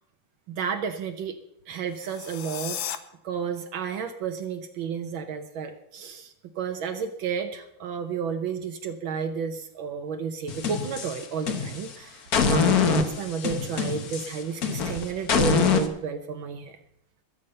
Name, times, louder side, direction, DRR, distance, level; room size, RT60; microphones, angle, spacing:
voice 1, 0.5-1.3 1.7-2.8 3.2-16.8, right 6 dB, 80° right, 5 dB, 1.7 m, -32 dB
sound 1, 1.9-3.0, left 10 dB, 80° left, 1.6 m, -35 dB
sound 2, 10.5-11.9 12.3-15.9, left 5 dB, 55° left, 1.5 m, -24 dB
21.5 x 7.3 x 5.5 m, 0.79 s
omnidirectional pair, 2.2 m